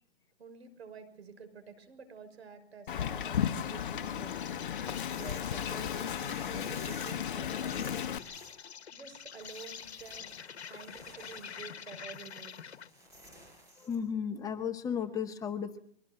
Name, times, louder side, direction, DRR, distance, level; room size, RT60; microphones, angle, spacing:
voice 1, 0.4-4.3 4.6-8.1 8.9-12.8, right 5 dB, 75° right, 10 dB, 6.0 m, -50 dB
Wind, 2.9-8.2, left 9 dB, 50° left, 1.3 m, -34 dB
Insect, 3.6-13.0, left 7 dB, 75° left, 1.4 m, -47 dB
sound 1, 4.8-14.1, equal, 10° right, 6.0 m, -54 dB
voice 2, 13.8-15.8, left 7 dB, 10° left, 7 dB, 0.9 m, -34 dB
23.5 x 18.0 x 7.8 m, 0.67 s
hypercardioid pair, 150°, 32 cm